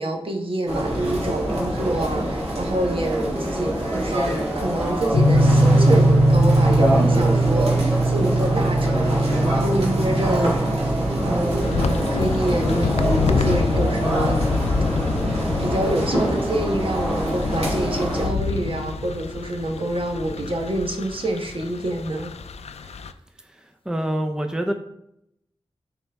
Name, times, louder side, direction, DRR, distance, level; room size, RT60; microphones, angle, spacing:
voice 1, 0.0-10.5 11.3-12.9 13.3-14.4 15.2-22.3 22.8-22.9, right 1 dB, 55° right, 2 dB, 1.2 m, -27 dB
sound 1, 0.7-18.3, right 1 dB, 70° right, 2.0 m, -25 dB
sound 2, 5.1-15.3, right 1 dB, 55° left, 0.7 m, -21 dB
sound 3, 11.6-23.1, left 4 dB, 90° left, 0.4 m, -27 dB
voice 2, 23.9-24.7, right 1 dB, 5° right, 5 dB, 0.6 m, -25 dB
7.5 x 4.1 x 3.5 m, 0.78 s
wide cardioid pair, 60°, 11 cm